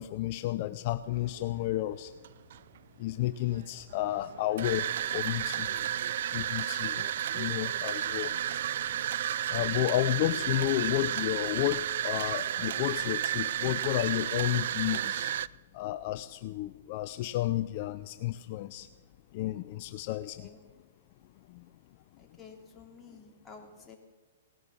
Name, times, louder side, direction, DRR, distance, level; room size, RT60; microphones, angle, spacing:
voice 1, 0.0-2.1 3.0-5.9 6.3-7.0 7.3-8.3 9.5-15.3 15.7-18.9 19.3-20.5, left 15 dB, 45° left, 12 dB, 0.6 m, -32 dB
sound 1, 1.2-1.5 2.2-2.8 3.5-15.5, right 11 dB, 65° right, 0.4 m, -32 dB
voice 2, 20.1-20.6 22.2-24.0, left 5 dB, 10° left, -1 dB, 2.9 m, -52 dB
18.5 x 10.5 x 7.1 m, 1.4 s
hypercardioid pair, 140°, 0 cm